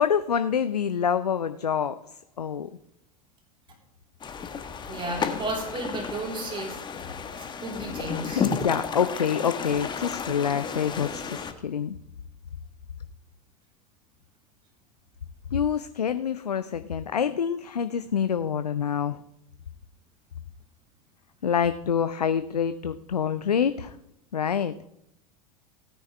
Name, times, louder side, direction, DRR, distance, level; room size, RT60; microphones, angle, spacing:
voice 1, 0.0-2.0 2.4-2.7 8.3-12.0 15.5-19.2 21.4-24.0 24.3-24.7, left 7 dB, 80° left, 12 dB, 0.5 m, -26 dB
sound 1, 4.2-11.5, left 6 dB, 25° left, 1.2 m, -33 dB
voice 2, 4.9-6.8 7.4-8.5, right 2 dB, 25° right, 0 dB, 3.6 m, -33 dB
16.5 x 9.7 x 3.3 m, 0.76 s
figure-of-eight pair, 80°, 20 cm